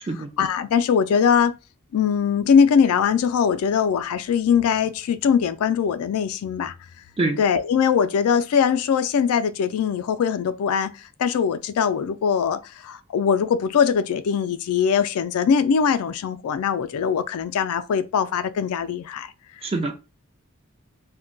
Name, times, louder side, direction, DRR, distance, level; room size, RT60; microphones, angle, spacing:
voice 1, 0.4-1.5 1.9-6.7 7.4-19.3, left 7 dB, 80° left, 0.3 m, -21 dB
voice 2, 19.6-19.9, right 2 dB, 25° right, 0.5 m, -24 dB
2.2 x 2.1 x 3.8 m
head